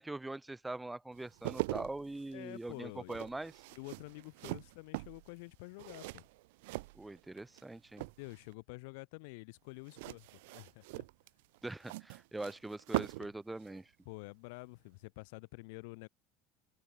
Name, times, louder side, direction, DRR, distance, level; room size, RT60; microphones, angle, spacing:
voice 1, 0.0-3.5 4.4-4.5 6.9-8.1 11.6-13.9, right 2 dB, 5° right, 1.9 m, -42 dB
sound 1, 1.2-7.6 7.9-8.5 9.9-13.4 13.6-13.8, right 23 dB, 90° right, 0.9 m, -42 dB
voice 2, 2.3-3.2 3.7-6.2 8.2-11.1 14.1-16.1, left 28 dB, 70° left, 2.1 m, -49 dB
open air
cardioid pair, 180°, 0 cm